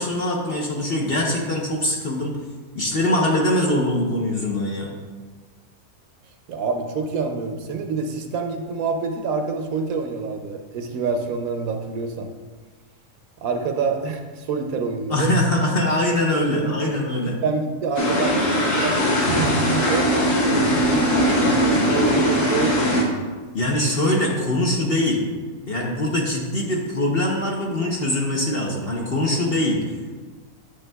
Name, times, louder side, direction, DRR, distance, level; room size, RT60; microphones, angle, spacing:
voice 1, 0.0-2.3 2.7-4.9 15.1-17.4 23.5-25.2 25.7-29.8, left 1 dB, 50° left, -1 dB, 0.9 m, -22 dB
voice 2, 6.5-12.3 13.4-15.3 16.5-17.0 17.4-19.0 19.4-20.1 20.4-23.0, right 4 dB, 70° right, 4 dB, 1.0 m, -27 dB
sound 1, 18.0-23.0, equal, 75° left, 1.8 m, -20 dB
8.7 x 6.5 x 2.2 m, 1.4 s
omnidirectional pair, 1.6 m